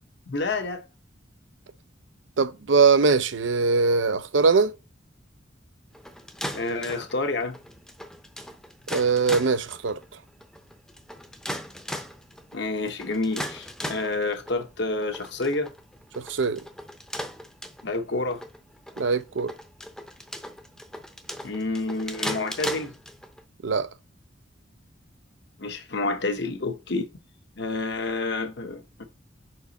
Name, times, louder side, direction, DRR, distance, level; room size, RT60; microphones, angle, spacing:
voice 1, 0.3-0.8 6.5-7.6 12.5-15.7 17.8-18.4 21.4-22.9 25.6-27.1 27.6-29.0, left 3 dB, 60° left, 1.0 m, -29 dB
voice 2, 2.4-4.7 8.9-10.0 16.3-16.6 19.0-19.5 23.6-23.9, right 4 dB, 80° right, 0.6 m, -21 dB
sound 1, 5.9-23.4, equal, 5° left, 0.7 m, -37 dB
6.0 x 4.5 x 4.1 m
head